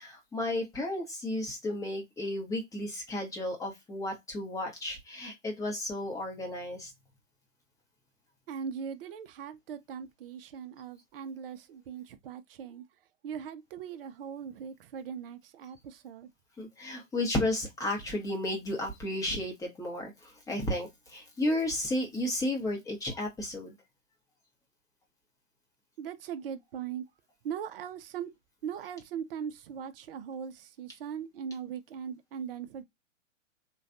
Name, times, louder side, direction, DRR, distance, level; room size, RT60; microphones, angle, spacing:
voice 1, 0.0-6.9 16.6-23.7, left 1 dB, 10° left, 0.8 m, -33 dB
voice 2, 8.5-12.8 13.2-16.3 26.0-27.0 27.4-28.3 28.6-32.8, right 7 dB, 45° right, 0.6 m, -40 dB
3.2 x 2.3 x 2.4 m
figure-of-eight pair, 115°, 39 cm